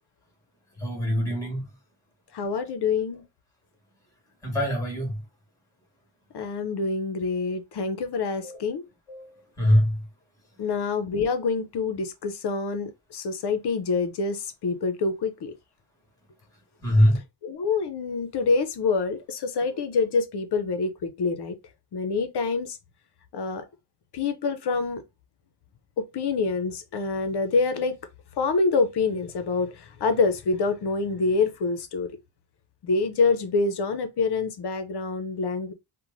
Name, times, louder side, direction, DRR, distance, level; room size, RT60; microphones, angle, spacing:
voice 1, 0.8-1.6 4.4-5.2 8.4-8.6 9.1-9.3 9.6-10.0 16.8-17.2, equal, 5° left, 1.5 m, -23 dB
voice 2, 2.3-3.2 6.3-8.8 10.6-15.5 17.4-21.6 21.9-22.8 23.3-23.6 24.1-25.0 26.1-27.9 28.4-29.7 30.0-32.1 32.8-35.7, left 4 dB, 55° left, 0.6 m, -26 dB
3.0 x 2.2 x 2.5 m
cardioid pair, 90°, 49 cm